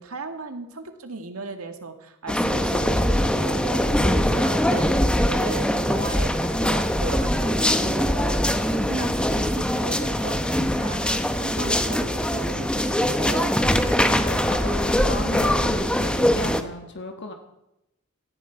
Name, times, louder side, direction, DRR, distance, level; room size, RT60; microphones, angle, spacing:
voice 1, 0.0-4.9 5.2-8.4 8.7-13.6, right 3 dB, 85° right, 6 dB, 1.9 m, -36 dB
sound 1, 2.3-16.6, equal, 5° left, 0.8 m, -22 dB
sound 2, 9.2-15.0, left 1 dB, 25° left, 1.3 m, -42 dB
voice 2, 14.0-17.3, left 2 dB, 55° left, 4 dB, 1.4 m, -34 dB
17.5 x 14.0 x 4.7 m, 0.87 s
head